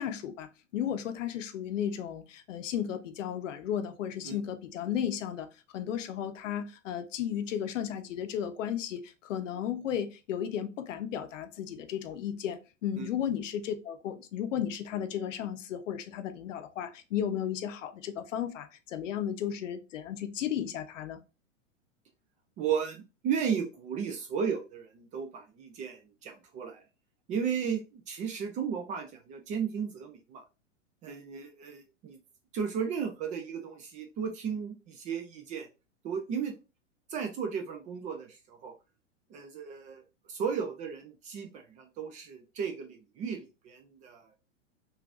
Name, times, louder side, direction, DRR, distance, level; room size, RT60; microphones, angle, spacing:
voice 1, 0.0-5.5 5.7-21.2, left 9 dB, 70° left, 0.7 m, -34 dB
voice 2, 22.6-26.8 27.3-30.4 31.0-32.2 32.5-35.7 36.0-36.5 37.1-38.7 39.3-40.0 40.3-44.3, right 7 dB, 20° right, 0.3 m, -35 dB
3.8 x 2.5 x 2.4 m
hypercardioid pair, 105°, 38 cm